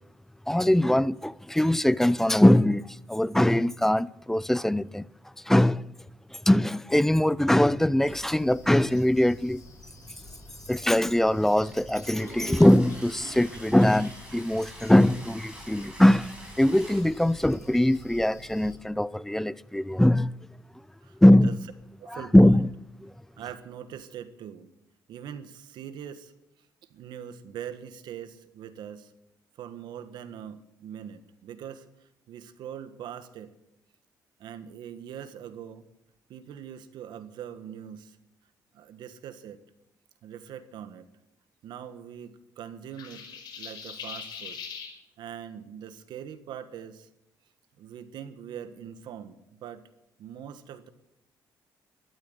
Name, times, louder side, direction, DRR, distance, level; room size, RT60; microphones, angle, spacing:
voice 1, 0.5-5.1 5.5-5.9 6.3-9.6 10.7-20.3 21.2-21.6 22.1-22.7 23.0-23.1, left 1 dB, 5° left, 0.5 m, -21 dB
sound 1, 8.0-18.8, left 2 dB, 40° left, 7.9 m, -49 dB
Toilet flush, 11.6-11.7 12.0-17.0, right 1 dB, 10° right, 6.5 m, -45 dB
voice 2, 21.0-21.5 22.0-22.6 23.4-24.7 25.1-26.3 26.9-29.1 29.5-33.5 34.4-35.9 36.3-38.2 38.7-39.6 40.2-41.1 41.6-44.6 45.2-47.1 47.8-49.9 50.2-50.9, right 9 dB, 75° right, 1.4 m, -42 dB
sound 2, 43.0-44.9, left 6 dB, 70° left, 5.2 m, -40 dB
13.0 x 12.5 x 8.1 m
cardioid pair, 100°, 8 cm